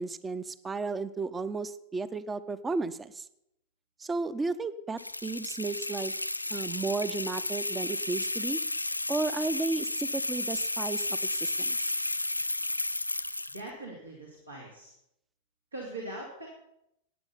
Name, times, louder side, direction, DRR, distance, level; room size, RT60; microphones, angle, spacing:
voice 1, 0.0-3.2 4.0-6.1 6.5-8.6 9.1-11.8, right 3 dB, 15° right, 16 dB, 0.7 m, -33 dB
sound 1, 5.0-13.7, left 2 dB, 85° left, 0.4 m, -32 dB
voice 2, 13.5-14.9 15.7-16.5, right 1 dB, 80° right, -2 dB, 2.6 m, -41 dB
15.0 x 9.8 x 5.7 m, 0.79 s
figure-of-eight pair, 90°, 0 cm